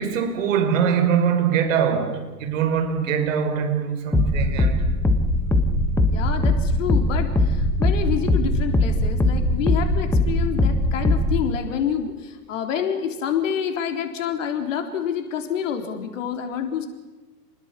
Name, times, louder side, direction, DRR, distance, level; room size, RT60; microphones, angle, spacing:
voice 1, 0.0-4.8, right 7 dB, 55° right, 7 dB, 5.4 m, -22 dB
sound 1, 4.1-11.5, left 1 dB, 5° left, 1.2 m, -21 dB
voice 2, 6.1-16.9, left 8 dB, 50° left, 5 dB, 3.8 m, -28 dB
29.0 x 20.0 x 7.4 m, 1.2 s
hypercardioid pair, 120°, 47 cm